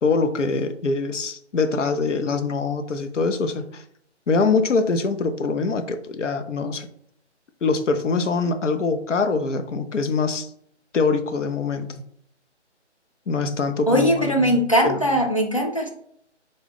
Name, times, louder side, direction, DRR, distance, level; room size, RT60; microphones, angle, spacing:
voice 1, 0.0-3.8 4.3-6.9 7.6-10.5 10.9-12.0 13.3-15.0, left 4 dB, 80° left, 7 dB, 0.6 m, -24 dB
voice 2, 13.9-15.9, equal, 30° left, 0 dB, 0.4 m, -20 dB
3.8 x 2.2 x 3.5 m, 0.69 s
figure-of-eight pair, 145°, 36 cm